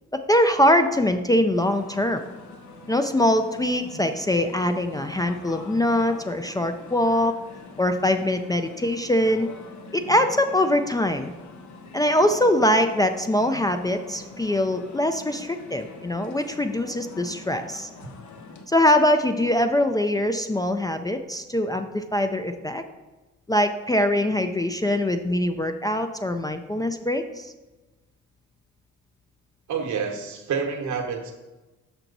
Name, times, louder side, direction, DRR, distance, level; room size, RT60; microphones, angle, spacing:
voice 1, 0.1-2.2 2.9-7.3 7.8-9.5 9.9-11.3 11.9-17.9 18.7-22.8 23.5-27.5, left 1 dB, 15° left, 7 dB, 0.3 m, -23 dB
sound 1, 1.5-18.7, left 3 dB, 70° left, 0.9 m, -44 dB
voice 2, 29.7-31.3, right 6 dB, 70° right, 3 dB, 1.1 m, -28 dB
6.0 x 5.7 x 3.9 m, 1.1 s
cardioid pair, 90°, 30 cm